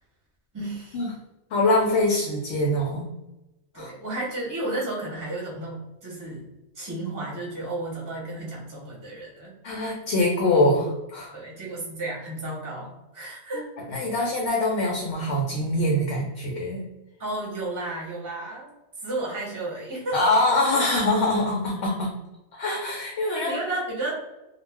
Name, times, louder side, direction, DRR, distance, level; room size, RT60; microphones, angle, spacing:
voice 1, 0.5-1.0 3.7-6.5 6.7-9.5 11.3-13.7 17.2-18.7 19.0-20.3 23.3-24.1, right 2 dB, 20° right, -4 dB, 0.7 m, -32 dB
voice 2, 1.5-3.1 3.8-3.9 9.6-11.3 13.5-13.6 13.9-16.9 20.1-22.1 22.5-23.5, left 1 dB, 85° left, -1 dB, 0.9 m, -24 dB
2.3 x 2.1 x 3.3 m, 0.97 s
omnidirectional pair, 1.1 m